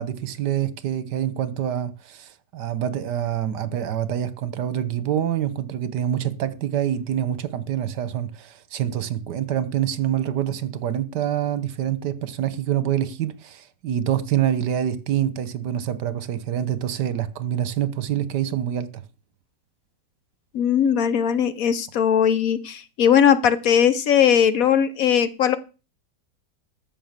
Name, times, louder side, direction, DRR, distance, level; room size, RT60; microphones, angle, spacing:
voice 1, 0.0-19.0, right 10 dB, 75° right, 1.5 m, -26 dB
voice 2, 20.5-25.6, left 8 dB, 60° left, 1.1 m, -19 dB
13.5 x 5.2 x 7.3 m
omnidirectional pair, 1.8 m